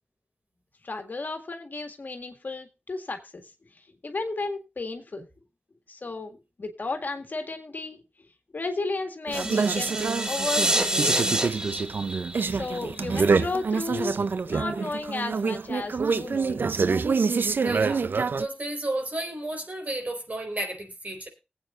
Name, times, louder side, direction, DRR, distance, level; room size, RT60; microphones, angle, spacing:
voice 1, 0.8-3.5 4.0-5.3 5.9-8.0 8.5-10.0 10.2-11.5 12.5-16.7, left 3 dB, 60° left, 5 dB, 1.9 m, -33 dB
sound 1, 9.3-13.4, right 1 dB, 20° right, 1.2 m, -27 dB
sound 2, 9.3-18.5, right 5 dB, 75° right, 0.5 m, -26 dB
voice 2, 17.6-18.1 18.4-21.3, right 1 dB, 45° right, 3 dB, 4.4 m, -32 dB
21.0 x 8.5 x 2.5 m, 0.28 s
cardioid pair, 50°, 3 cm